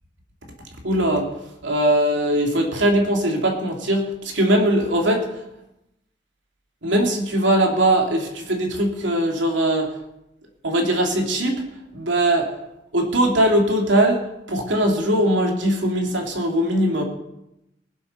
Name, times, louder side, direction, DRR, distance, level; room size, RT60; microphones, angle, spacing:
voice 1, 0.8-1.3 1.6-5.3 6.8-9.9 10.6-11.6 11.9-12.5 12.9-17.0, right 1 dB, 85° right, 1 dB, 2.9 m, -20 dB
20.0 x 7.9 x 5.5 m, 0.88 s
head